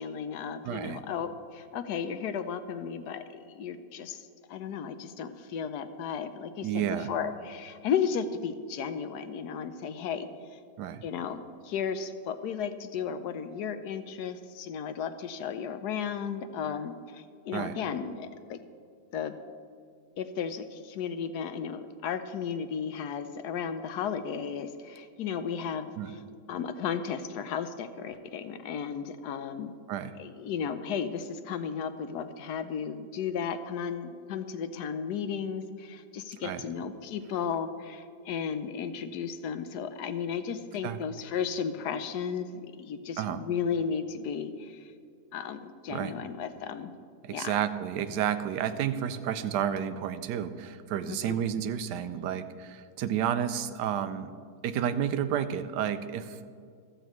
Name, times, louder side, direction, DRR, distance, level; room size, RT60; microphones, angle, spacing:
voice 1, 0.0-10.6 11.0-18.6 19.1-19.4 20.2-26.2 26.5-29.7 30.2-44.9 45.3-46.9 47.3-47.5 51.1-51.4, left 7 dB, 75° left, 10 dB, 1.2 m, -34 dB
voice 2, 0.6-1.0 6.6-7.1 10.8-11.0 17.5-17.7 26.0-26.1 29.9-30.2 36.4-36.6 40.8-41.0 43.2-43.4 45.9-46.1 47.2-54.3 54.6-56.4, right 9 dB, 80° right, 11 dB, 1.2 m, -31 dB
14.5 x 13.5 x 3.1 m, 2.3 s
omnidirectional pair, 1.8 m